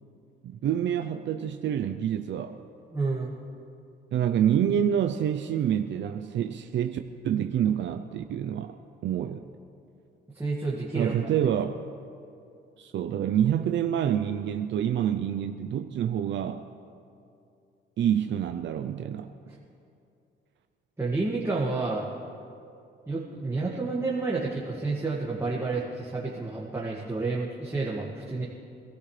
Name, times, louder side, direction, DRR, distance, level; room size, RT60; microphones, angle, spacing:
voice 1, 0.4-2.6 4.1-8.8 9.0-9.5 10.9-11.7 12.8-16.6 18.0-19.3, right 9 dB, 65° right, 7 dB, 0.6 m, -27 dB
voice 2, 2.9-3.3 10.3-11.3 21.0-22.1 23.1-28.4, right 3 dB, 15° right, -5 dB, 2.0 m, -30 dB
25.0 x 13.5 x 3.3 m, 2.5 s
cardioid pair, 90°, 20 cm